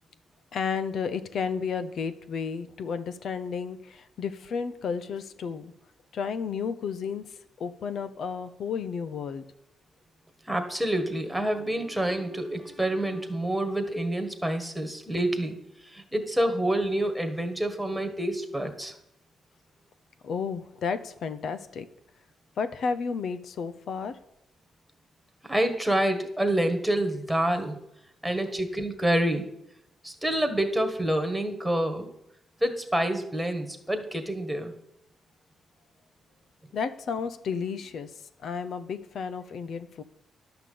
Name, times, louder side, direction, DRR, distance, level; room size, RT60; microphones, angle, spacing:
voice 1, 0.5-5.7 6.1-9.4 20.2-21.9 22.6-24.2 28.3-28.4 36.7-40.0, left 6 dB, 65° left, 11 dB, 0.8 m, -32 dB
voice 2, 10.5-15.6 15.8-18.9 25.4-27.8 28.2-29.5 30.0-32.1 32.6-34.7, right 1 dB, ahead, 5 dB, 1.7 m, -27 dB
11.5 x 5.9 x 8.5 m, 0.79 s
cardioid pair, 115°, 0 cm